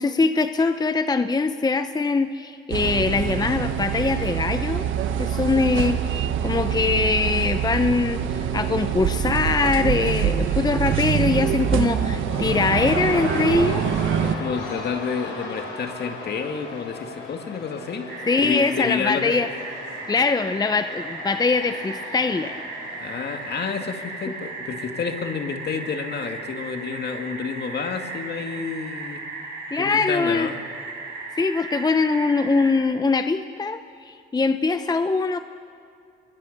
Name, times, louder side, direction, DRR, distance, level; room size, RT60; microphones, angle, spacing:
voice 1, 0.0-4.9 5.2-13.8 18.3-19.5 20.1-22.5 29.7-30.5 31.4-35.4, left 4 dB, 20° left, 10 dB, 0.7 m, -22 dB
sound 1, 2.7-14.4, right 9 dB, 80° right, 1.4 m, -25 dB
Cheering / Crowd, 8.2-24.9, left 3 dB, 85° left, 6.1 m, -38 dB
voice 2, 14.2-18.1 18.4-19.4 23.0-29.2 29.8-30.6, left 5 dB, 55° left, 5 dB, 2.2 m, -29 dB
sound 2, 18.1-32.7, right 3 dB, 50° right, 7.3 m, -36 dB
26.0 x 22.0 x 6.7 m, 2.4 s
cardioid pair, 90°, 20 cm